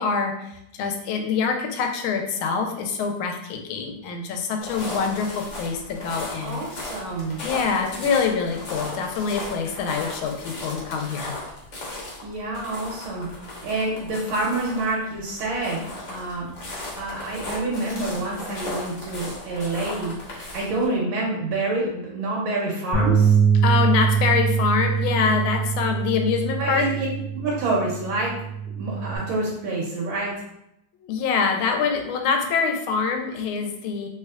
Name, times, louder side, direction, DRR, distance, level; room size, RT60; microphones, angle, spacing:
voice 1, 0.0-6.6 7.4-11.3 23.6-26.9 31.0-34.1, left 5 dB, 85° left, 4 dB, 1.4 m, -25 dB
sound 1, 4.6-20.9, left 2 dB, 55° left, 0.9 m, -36 dB
voice 2, 6.4-7.4 12.2-13.3 13.6-16.5 17.0-20.1 20.5-23.3 26.6-27.1 27.3-28.4 28.6-30.3, right 2 dB, 90° right, -3 dB, 1.5 m, -27 dB
Bass guitar, 22.9-29.2, right 7 dB, 25° right, 1.2 m, -23 dB
3.3 x 3.0 x 2.3 m, 0.80 s
omnidirectional pair, 2.2 m